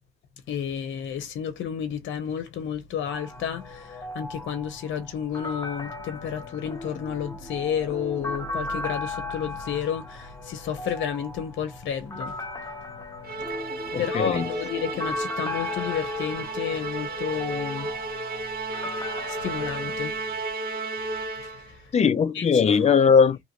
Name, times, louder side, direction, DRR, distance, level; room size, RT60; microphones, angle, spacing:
voice 1, 0.5-12.7 13.5-17.9 19.3-20.2 21.4-21.9 22.3-22.8, left 8 dB, 70° left, 0.8 m, -31 dB
sound 1, 3.1-20.0, left 2 dB, 15° left, 0.8 m, -37 dB
Musical instrument, 13.2-21.8, right 2 dB, 50° right, 1.0 m, -33 dB
voice 2, 13.9-14.5 21.9-23.4, left 6 dB, 35° left, 0.5 m, -19 dB
2.9 x 2.5 x 2.9 m
cardioid pair, 90°, 20 cm